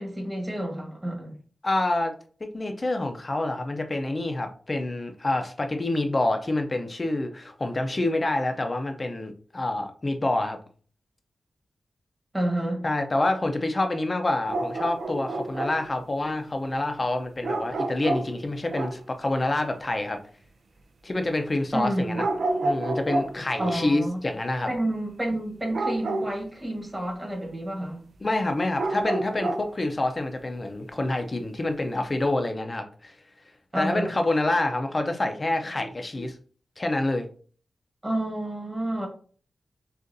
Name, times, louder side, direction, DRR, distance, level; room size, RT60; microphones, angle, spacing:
voice 1, 0.0-1.3 12.3-12.8 21.7-22.2 23.6-24.2 24.7-28.0 33.7-34.1 38.0-39.1, right 1 dB, 15° right, 0 dB, 1.3 m, -29 dB
voice 2, 1.6-10.6 12.8-20.2 21.0-22.3 22.6-24.7 28.2-33.2 33.8-36.4 36.8-37.3, left 2 dB, 30° left, 6 dB, 0.5 m, -27 dB
sound 1, 14.5-15.9 17.4-19.0 22.1-23.9 25.7-26.4 28.7-29.7, right 2 dB, 65° right, 0.4 m, -29 dB
6.4 x 2.5 x 2.6 m, 0.44 s
wide cardioid pair, 130°, 0 cm